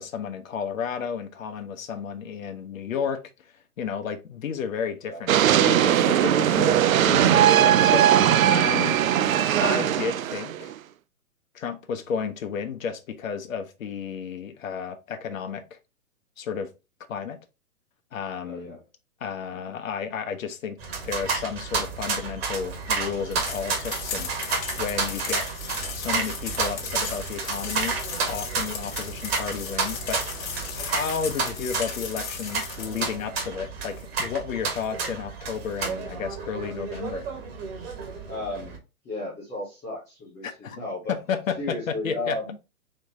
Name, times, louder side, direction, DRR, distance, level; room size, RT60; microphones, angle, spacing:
voice 1, 0.0-6.8 7.0-9.0 9.6-10.7 11.5-15.8 16.4-16.7 17.1-17.4 18.1-18.8 19.2-20.8 21.0-25.5 26.0-28.0 28.3-37.3 40.4-40.8 41.1-42.5, left 6 dB, 60° left, 1.0 m, -32 dB
sound 1, 5.3-10.7, right 10 dB, 65° right, 0.5 m, -19 dB
voice 2, 18.4-18.8 38.3-38.8 39.0-41.2 41.6-42.5, left 2 dB, 5° left, 0.5 m, -34 dB
sound 2, 20.8-38.8, right 4 dB, 40° right, 1.5 m, -31 dB
sound 3, 23.3-33.1, left 6 dB, 30° left, 1.2 m, -36 dB
4.3 x 3.3 x 3.7 m
hypercardioid pair, 130°, 44 cm